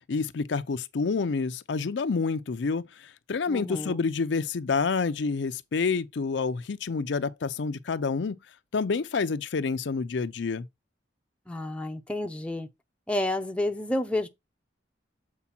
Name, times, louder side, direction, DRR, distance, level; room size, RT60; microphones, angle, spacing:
voice 1, 0.1-8.4 8.7-10.7, left 4 dB, 70° left, 0.5 m, -28 dB
voice 2, 3.5-4.0 11.5-12.7 13.1-14.3, left 1 dB, 5° left, 0.6 m, -30 dB
7.2 x 4.6 x 4.2 m
head